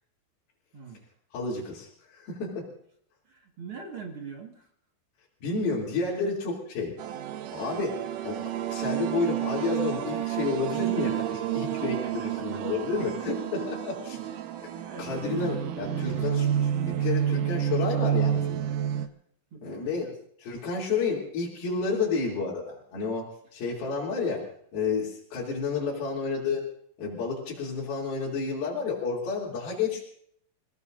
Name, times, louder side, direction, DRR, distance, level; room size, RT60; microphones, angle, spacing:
voice 1, 0.7-1.0 3.3-4.7 12.0-12.6 14.0-14.2 14.6-15.7 19.5-20.2, right 5 dB, 45° right, 1 dB, 2.2 m, -43 dB
voice 2, 1.3-2.7 5.4-7.0 7.5-14.2 15.0-18.7 19.6-20.1 20.4-26.6 27.0-30.0, left 4 dB, 80° left, -5 dB, 5.0 m, -31 dB
sound 1, 7.0-19.1, right 10 dB, 70° right, 2.3 m, -29 dB
28.5 x 17.5 x 2.6 m, 0.64 s
omnidirectional pair, 4.3 m